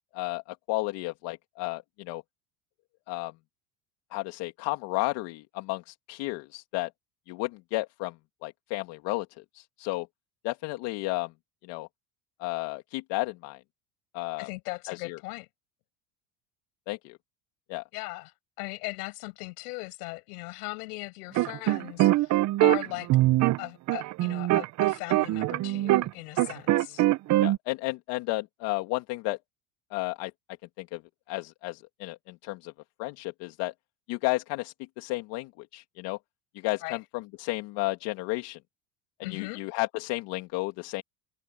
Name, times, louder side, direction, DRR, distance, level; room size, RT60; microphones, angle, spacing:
voice 1, 0.1-2.2 3.1-3.3 4.1-6.9 7.3-8.2 8.4-9.3 9.5-10.1 10.4-11.3 11.6-11.9 12.4-13.6 14.1-14.5 14.9-15.2 16.9-17.2 17.7-17.8 27.4-29.4 29.9-30.3 30.8-31.0 31.3-32.7 33.0-33.7 34.1-36.2 36.5-38.6 39.2-41.0, left 21 dB, 65° left, 2.2 m, -33 dB
voice 2, 14.4-15.5 17.9-23.1 23.6-27.0 36.8-37.0 39.2-39.6, left 25 dB, 80° left, 5.7 m, -38 dB
sound 1, 21.4-26.1 26.4-27.6, right 17 dB, 40° right, 0.6 m, -23 dB
supercardioid pair, 115°, 45 cm